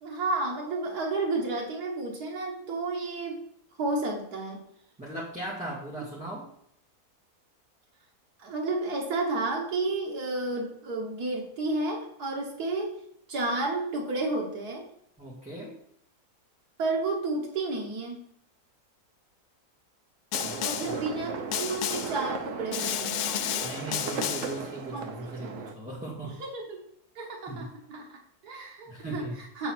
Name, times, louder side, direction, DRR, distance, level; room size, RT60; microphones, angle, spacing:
voice 1, 0.0-3.4 3.8-4.6 8.4-13.0 13.3-14.9 16.8-18.2 20.6-23.2 24.9-25.1 25.4-25.7 26.4-26.8 27.2-29.7, right 2 dB, 85° right, -1 dB, 1.9 m, -31 dB
voice 2, 5.0-6.5 15.2-15.7 20.4-21.0 23.6-26.4 27.5-27.7 28.9-29.4, right 2 dB, 5° right, -7 dB, 1.8 m, -38 dB
Snare drum, 20.3-21.0 21.5-22.2 22.7-24.6, left 10 dB, 85° left, 1.1 m, -32 dB
sound 1, 20.3-25.7, right 5 dB, 60° right, 1.1 m, -37 dB
8.1 x 4.0 x 6.0 m, 0.71 s
omnidirectional pair, 1.6 m